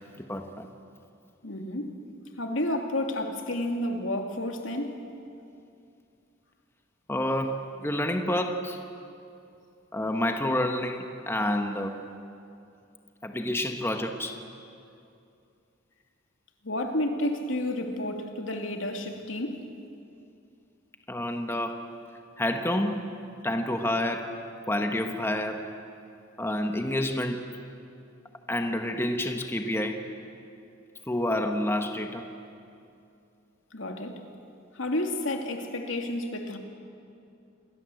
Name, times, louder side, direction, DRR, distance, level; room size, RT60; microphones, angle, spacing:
voice 1, 0.2-0.7 7.1-8.8 9.9-12.0 13.2-14.4 21.1-21.8 22.4-23.2 23.4-24.3 24.7-25.7 26.4-27.5 28.5-30.1 31.1-32.3, left 1 dB, 10° left, 5 dB, 1.3 m, -29 dB
voice 2, 1.4-2.0 2.4-5.0 16.6-19.7 33.7-34.2 34.7-36.6, left 1 dB, 80° left, 4 dB, 2.6 m, -31 dB
28.0 x 21.5 x 7.8 m, 2.6 s
head